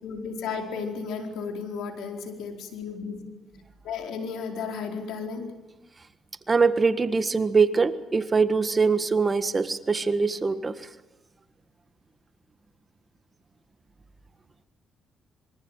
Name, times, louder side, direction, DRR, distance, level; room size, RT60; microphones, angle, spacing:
voice 1, 0.0-3.2 3.8-5.5, left 5 dB, 85° left, 4 dB, 4.5 m, -34 dB
voice 2, 6.5-10.7, right 4 dB, 30° right, 11 dB, 1.6 m, -23 dB
25.0 x 24.0 x 9.2 m, 1.0 s
cardioid pair, 90°, 0 cm